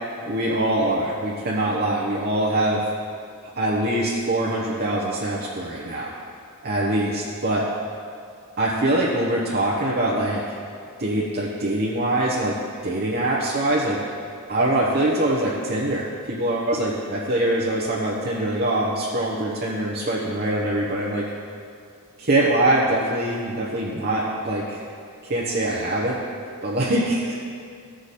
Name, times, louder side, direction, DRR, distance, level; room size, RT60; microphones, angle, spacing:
voice 1, 0.2-2.8 3.6-6.1 6.6-7.6 8.6-10.4 11.0-12.5 12.8-14.0 14.5-21.2 22.2-24.8 25.2-26.2 26.6-27.4, right 1 dB, 45° right, -5 dB, 1.0 m, -23 dB
15.0 x 5.0 x 4.2 m, 2.4 s
head